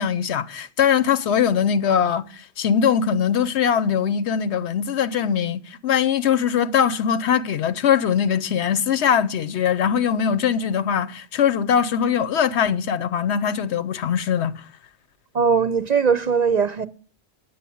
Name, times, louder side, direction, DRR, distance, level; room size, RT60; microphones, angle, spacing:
voice 1, 0.0-14.6, left 8 dB, 85° left, 1.0 m, -21 dB
voice 2, 15.3-16.9, right 6 dB, 45° right, 0.7 m, -20 dB
9.5 x 8.4 x 8.4 m
omnidirectional pair, 1.1 m